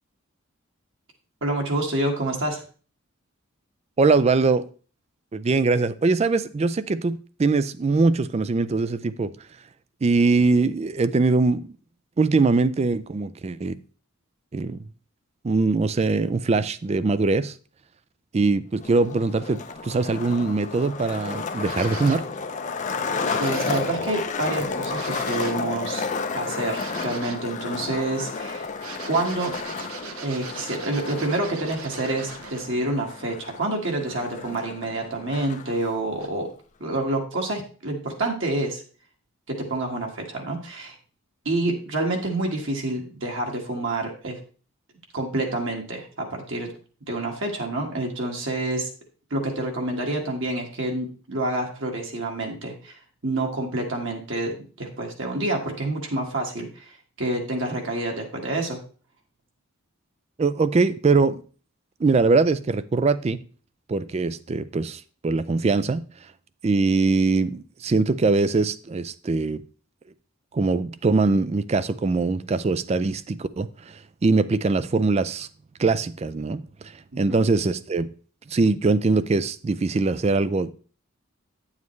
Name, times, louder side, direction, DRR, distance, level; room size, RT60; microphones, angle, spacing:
voice 1, 1.4-2.6 23.4-26.1 26.3-28.7 29.0-29.5 30.2-36.5 36.8-38.8 39.5-41.0 41.4-44.4 45.1-46.7 47.1-48.9 49.3-56.9 57.2-58.8 77.1-77.4, right 2 dB, 60° right, 1.7 m, -28 dB
voice 2, 4.0-4.7 5.3-9.3 10.0-11.7 12.2-13.7 14.5-14.8 15.4-17.5 18.3-22.3 60.4-61.4 62.0-63.4 63.9-66.1 66.6-69.6 70.5-75.5 75.8-78.1 78.5-80.7, right 3 dB, 30° right, 0.3 m, -22 dB
Skateboard, 18.8-35.8, left 4 dB, 35° left, 0.6 m, -32 dB
sound 1, 21.6-22.3 23.2-24.0 24.9-25.7 26.7-27.5 28.7-32.8 36.2-36.3, right 5 dB, 80° right, 1.1 m, -40 dB
9.5 x 7.3 x 3.1 m
head